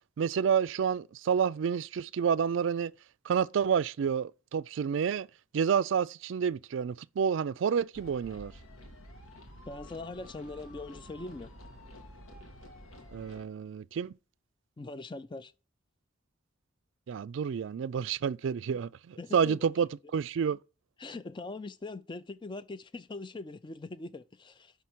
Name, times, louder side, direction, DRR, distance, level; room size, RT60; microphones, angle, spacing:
voice 1, 0.2-2.9 3.2-5.3 5.5-8.5 13.1-14.1 17.1-20.6, right 7 dB, 60° right, 0.3 m, -29 dB
sound 1, 7.9-13.4, left 1 dB, 90° left, 1.4 m, -50 dB
voice 2, 9.7-11.5 14.8-15.5 19.2-19.7 21.0-24.7, left 3 dB, 20° left, 0.4 m, -41 dB
5.6 x 5.6 x 6.0 m
head